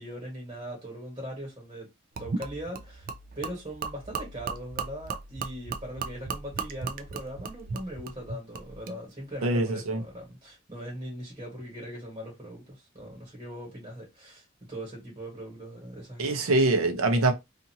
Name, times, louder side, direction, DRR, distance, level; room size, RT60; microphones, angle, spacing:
voice 1, 0.0-1.9 2.2-3.1 3.3-16.4, equal, 25° right, 1.4 m, -40 dB
Gurgling / Liquid, 2.2-9.0, right 5 dB, 40° right, 0.4 m, -37 dB
voice 2, 9.4-10.0 16.2-17.3, right 2 dB, 85° right, 0.7 m, -24 dB
2.6 x 2.5 x 2.8 m
head